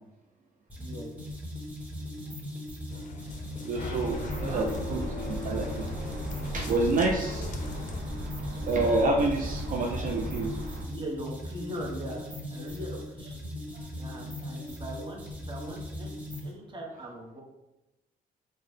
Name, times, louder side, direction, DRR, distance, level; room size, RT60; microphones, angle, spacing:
sound 1, 0.7-16.5, left 1 dB, 10° right, 1.3 m, -39 dB
voice 1, 0.8-1.1 4.5-4.8 7.0-7.3 7.5-7.7 9.9-10.1 10.8-13.4 14.0-16.1 16.4-17.4, equal, 30° right, -1 dB, 0.9 m, -40 dB
sound 2, 2.9-8.0, left 3 dB, 50° left, 0.5 m, -40 dB
voice 2, 3.6-5.0 5.3-5.9 6.5-7.5 8.5-10.6 13.7-13.8, right 2 dB, 50° right, 1 dB, 0.4 m, -28 dB
sound 3, 4.1-10.8, equal, 70° right, 0.9 m, -37 dB
3.9 x 2.1 x 3.2 m, 0.98 s
cardioid pair, 85°, 17 cm